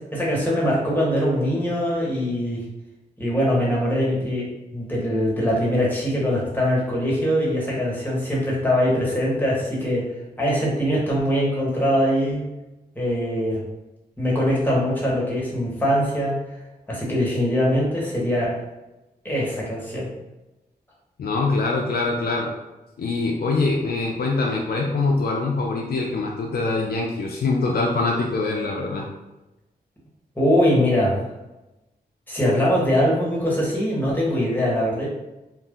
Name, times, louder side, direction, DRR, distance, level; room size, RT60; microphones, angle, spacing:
voice 1, 0.1-2.6 3.2-4.5 4.7-10.0 10.4-12.4 12.9-13.6 14.2-16.4 16.9-18.5 19.2-20.1 30.3-31.2 32.3-35.1, equal, 10° left, -6 dB, 1.3 m, -22 dB
voice 2, 21.2-22.5 23.0-29.1, left 3 dB, 65° left, -1 dB, 0.4 m, -24 dB
2.5 x 2.2 x 3.6 m, 1.0 s
cardioid pair, 65°, 17 cm